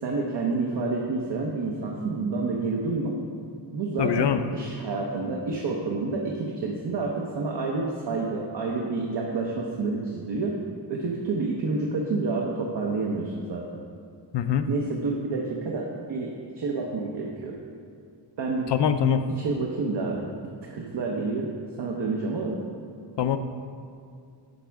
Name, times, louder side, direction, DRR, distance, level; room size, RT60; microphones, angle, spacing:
voice 1, 0.0-3.2 3.7-10.6 10.9-13.8 14.7-17.6 18.4-18.7 19.3-20.3 20.7-21.5 21.8-22.6, right 3 dB, 65° right, -1 dB, 0.9 m, -29 dB
voice 2, 4.0-4.4 14.3-14.7 18.7-19.3 23.2-23.4, left 8 dB, 70° left, 9 dB, 0.5 m, -23 dB
10.5 x 6.2 x 3.5 m, 2.4 s
wide cardioid pair, 165°, 43 cm